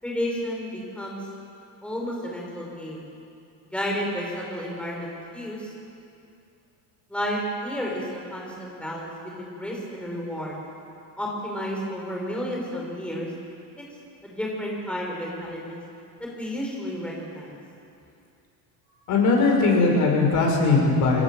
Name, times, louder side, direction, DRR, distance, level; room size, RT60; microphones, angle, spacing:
voice 1, 0.0-1.2 1.8-3.1 3.7-5.7 7.1-10.6 11.2-13.3 13.8-13.9 14.2-15.8 16.2-17.6, equal, 5° left, -3 dB, 5.0 m, -31 dB
voice 2, 19.1-21.2, left 3 dB, 55° left, 0 dB, 6.0 m, -20 dB
26.0 x 17.5 x 7.6 m, 2.6 s
cardioid pair, 145°, 35 cm